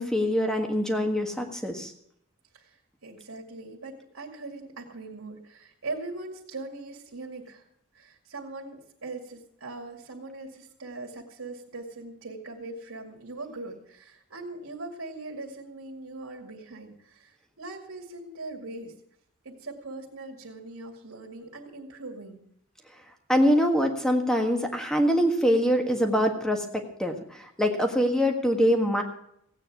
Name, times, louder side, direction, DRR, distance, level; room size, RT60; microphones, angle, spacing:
voice 1, 0.0-1.9 23.3-27.1 27.4-29.0, equal, 5° left, 4 dB, 1.6 m, -24 dB
voice 2, 2.5-7.7 7.9-18.9 19.4-22.4, right 2 dB, 85° right, 0 dB, 2.3 m, -41 dB
16.0 x 9.0 x 6.0 m, 0.72 s
head